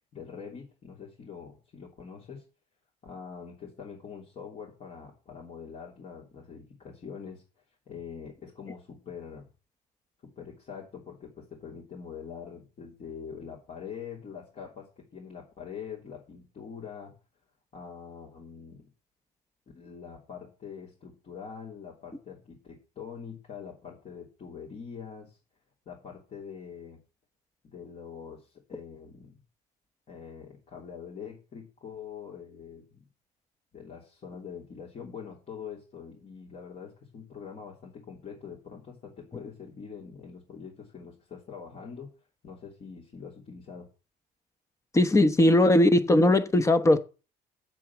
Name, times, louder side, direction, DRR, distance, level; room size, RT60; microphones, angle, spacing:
voice 1, 0.1-2.4 3.0-7.4 7.9-9.5 10.2-17.1 17.7-18.9 19.7-25.4 25.9-27.0 27.6-29.4 30.1-33.0 33.7-42.1 42.4-43.9, left 6 dB, 45° left, 3.3 m, -44 dB
voice 2, 44.9-47.0, left 1 dB, 15° left, 1.1 m, -19 dB
7.8 x 7.5 x 6.0 m
cardioid pair, 110°, 17 cm